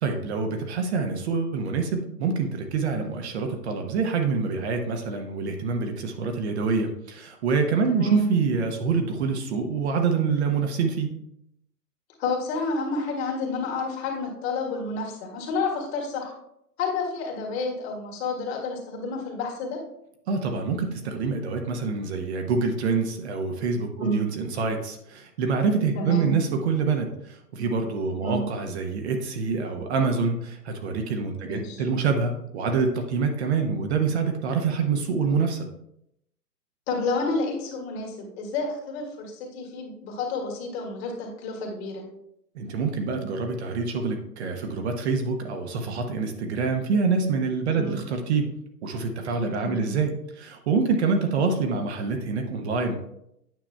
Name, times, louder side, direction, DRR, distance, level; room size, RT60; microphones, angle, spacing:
voice 1, 0.0-11.2 20.3-35.7 42.5-48.5 48.8-53.0, right 4 dB, 45° right, 4 dB, 0.9 m, -26 dB
voice 2, 7.9-8.3 12.2-16.3 16.8-19.8 24.0-24.2 25.9-26.4 28.2-28.5 31.4-31.8 36.9-42.0 47.7-48.0 49.6-50.0, left 3 dB, 40° left, 0 dB, 1.9 m, -30 dB
9.1 x 5.9 x 2.2 m, 0.78 s
hypercardioid pair, 125°, 48 cm